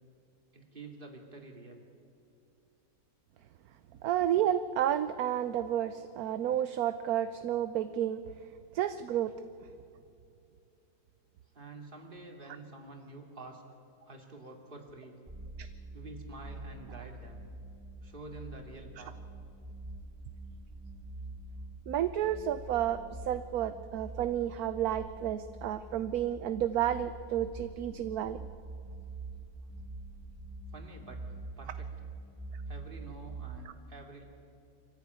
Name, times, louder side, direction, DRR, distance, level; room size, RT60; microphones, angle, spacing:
voice 1, 0.5-1.8 11.5-13.6 14.0-15.2 15.9-17.5 18.0-19.1 30.7-31.2 31.6-31.9 32.7-34.2, right 2 dB, 30° right, 2 dB, 2.8 m, -48 dB
voice 2, 4.0-8.2 8.7-9.4 15.6-15.7 21.9-28.5, right 11 dB, 70° right, 12 dB, 1.1 m, -31 dB
sound 1, 15.3-33.6, right 2 dB, 5° right, 1.4 m, -45 dB
25.0 x 14.5 x 9.5 m, 2.6 s
omnidirectional pair, 1.8 m